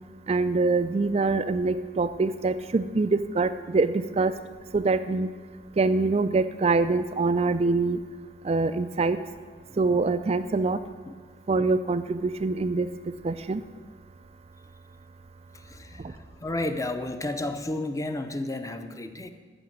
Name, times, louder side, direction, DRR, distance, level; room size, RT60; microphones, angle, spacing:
voice 1, 0.3-4.3 4.7-5.3 5.8-8.0 8.4-9.2 9.8-10.8 11.5-12.9 13.2-13.6, right 3 dB, 35° right, 10 dB, 0.4 m, -24 dB
voice 2, 15.5-19.3, left 2 dB, 15° left, 8 dB, 0.7 m, -32 dB
14.0 x 6.2 x 8.9 m, 1.5 s
head